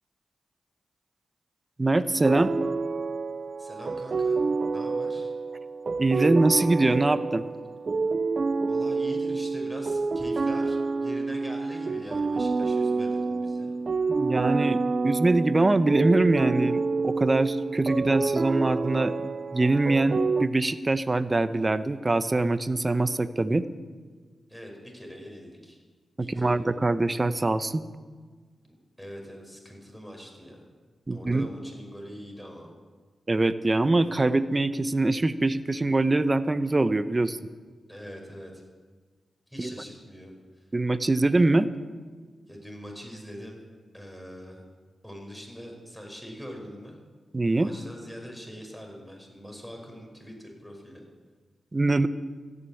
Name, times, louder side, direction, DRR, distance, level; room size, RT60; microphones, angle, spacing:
voice 1, 1.8-2.5 6.0-7.4 14.1-23.7 26.2-27.8 31.1-31.5 33.3-37.4 39.6-39.7 40.7-41.7 47.3-47.7 51.7-52.1, right 2 dB, 30° right, 13 dB, 0.9 m, -23 dB
sound 1, 2.2-20.5, right 4 dB, 55° right, 0.7 m, -28 dB
voice 2, 3.6-4.4 4.7-5.3 8.7-13.8 24.5-25.8 26.2-26.7 29.0-30.6 31.1-32.7 37.9-38.6 39.5-40.7 42.5-43.6 43.9-44.6 45.0-47.0 47.5-51.0, equal, 5° left, 1 dB, 5.2 m, -43 dB
14.0 x 9.6 x 8.7 m, 1.5 s
supercardioid pair, 45°, 0 cm